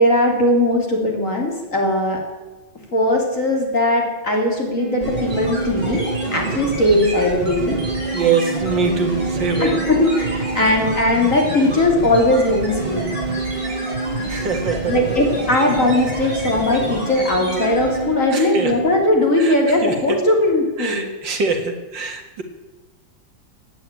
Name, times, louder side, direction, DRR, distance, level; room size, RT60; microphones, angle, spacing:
voice 1, 0.0-2.2 2.9-6.1 6.3-7.8 9.6-13.1 14.9-21.1, left 1 dB, 40° left, 1 dB, 3.6 m, -19 dB
sound 1, 4.8-19.0, right 4 dB, 85° right, 2.2 m, -29 dB
sound 2, 5.0-18.2, right 1 dB, 45° right, 6.4 m, -29 dB
voice 2, 8.1-9.8 14.3-15.0 16.2-16.4 18.3-18.7 19.4-20.2 20.8-22.4, right 5 dB, 65° right, 5 dB, 2.5 m, -24 dB
16.5 x 9.2 x 9.1 m, 1.1 s
omnidirectional pair, 2.2 m